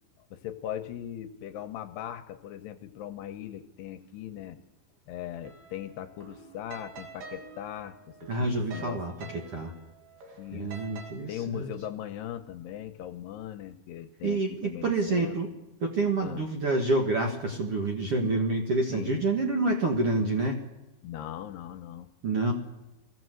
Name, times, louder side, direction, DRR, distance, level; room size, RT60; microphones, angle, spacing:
voice 1, 0.3-4.6 5.1-9.3 10.4-10.8 11.3-15.4 16.2-16.5 18.9-19.2 21.0-22.1, left 11 dB, 75° left, 7 dB, 2.6 m, -39 dB
sound 1, 5.4-11.1, right 4 dB, 55° right, 3.3 m, -47 dB
voice 2, 8.3-9.1 9.5-9.7 10.5-11.7 14.2-15.5 15.8-20.6 22.2-22.5, right 2 dB, 80° right, 1 dB, 1.3 m, -27 dB
23.0 x 17.0 x 7.8 m, 1.0 s
omnidirectional pair, 5.5 m